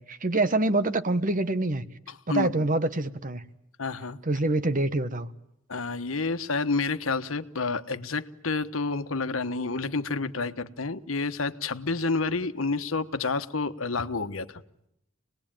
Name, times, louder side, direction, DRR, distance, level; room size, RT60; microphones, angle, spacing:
voice 1, 0.0-1.8 2.3-3.4 4.3-5.3, right 2 dB, 40° right, 12 dB, 1.2 m, -26 dB
voice 2, 2.1-2.7 3.8-4.2 5.7-14.6, left 3 dB, 90° left, 9 dB, 1.3 m, -29 dB
28.0 x 20.0 x 9.0 m, 0.80 s
head